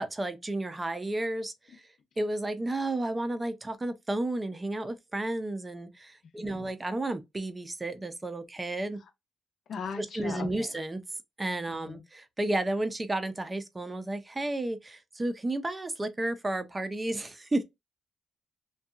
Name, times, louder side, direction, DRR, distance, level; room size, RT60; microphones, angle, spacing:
voice 1, 0.0-1.8 2.2-9.0 10.0-11.0 11.4-17.6, right 2 dB, 20° right, 0.5 m, -32 dB
voice 2, 9.7-10.7 11.7-12.0, left 6 dB, 60° left, 0.7 m, -39 dB
2.7 x 2.2 x 2.3 m
cardioid pair, 90°, 0 cm